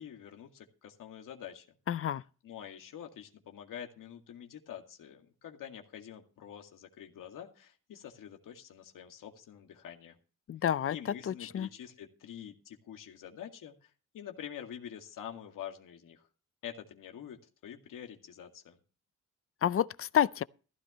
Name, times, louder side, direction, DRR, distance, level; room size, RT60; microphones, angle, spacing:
voice 1, 0.0-1.7 2.4-10.2 10.9-16.3 16.6-18.8, left 9 dB, 85° left, 2.2 m, -46 dB
voice 2, 1.9-2.2 10.5-11.0 11.3-11.7 19.6-20.4, left 10 dB, 45° left, 0.5 m, -29 dB
15.5 x 12.5 x 3.1 m
cardioid pair, 105°, 32 cm